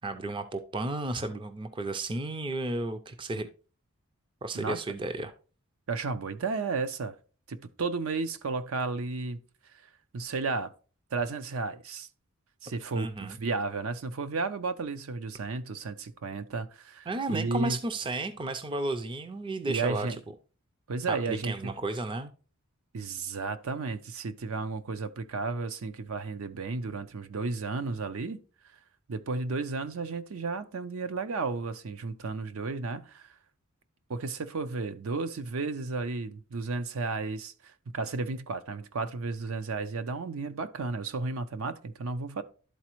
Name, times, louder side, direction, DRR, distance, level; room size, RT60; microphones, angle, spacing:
voice 1, 0.0-3.5 4.4-5.3 13.0-13.4 17.1-20.1 21.1-22.3, right 2 dB, 20° right, 0.4 m, -33 dB
voice 2, 5.9-7.1 7.5-9.4 9.7-10.7 11.1-12.1 12.6-17.8 19.7-20.2 20.9-21.7 22.9-28.4 28.6-28.8 29.1-33.3 34.1-42.4, right 3 dB, 70° right, 0.5 m, -33 dB
11.5 x 4.1 x 3.0 m
head